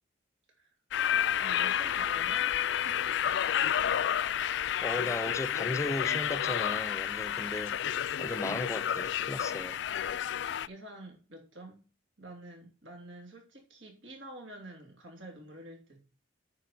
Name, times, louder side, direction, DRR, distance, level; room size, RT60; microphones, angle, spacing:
sound 1, 0.9-10.7, left 9 dB, 65° left, 0.3 m, -30 dB
voice 1, 1.1-3.1 8.2-8.6 10.6-11.8 12.2-16.0, right 1 dB, 75° right, 3.1 m, -48 dB
voice 2, 4.8-7.8 8.2-9.8, left 2 dB, 15° left, 0.5 m, -36 dB
9.5 x 4.8 x 5.9 m
head